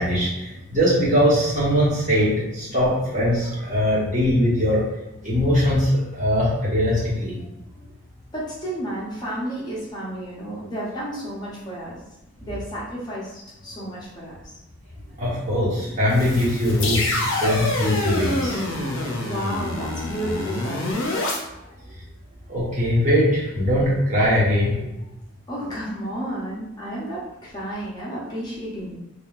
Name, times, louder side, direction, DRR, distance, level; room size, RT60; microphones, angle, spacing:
voice 1, 0.0-4.8 5.2-7.3 15.2-18.6 22.5-24.9, equal, 35° right, -7 dB, 1.2 m, -21 dB
voice 2, 8.3-12.0 12.4-14.5 19.2-21.1 25.5-29.0, equal, 20° left, -7 dB, 0.6 m, -32 dB
sound 1, 16.1-21.4, left 2 dB, 65° left, 0.6 m, -26 dB
3.7 x 2.3 x 2.4 m, 0.92 s
head